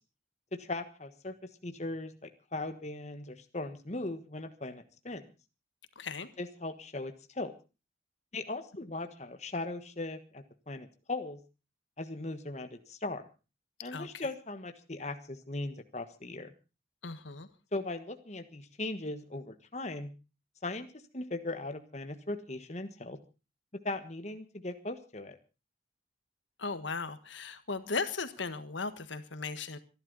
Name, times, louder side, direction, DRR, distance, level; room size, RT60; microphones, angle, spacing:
voice 1, 0.5-1.3 1.6-5.2 6.4-7.5 8.3-11.4 12.0-13.2 13.8-16.5 17.7-20.1 20.6-20.9 21.1-23.2 23.8-25.4, left 2 dB, 35° left, 8 dB, 1.4 m, -38 dB
voice 2, 5.9-6.3 13.9-14.3 17.0-17.5 26.6-29.8, left 4 dB, 85° left, 11 dB, 1.5 m, -37 dB
25.0 x 11.5 x 4.0 m, 0.32 s
head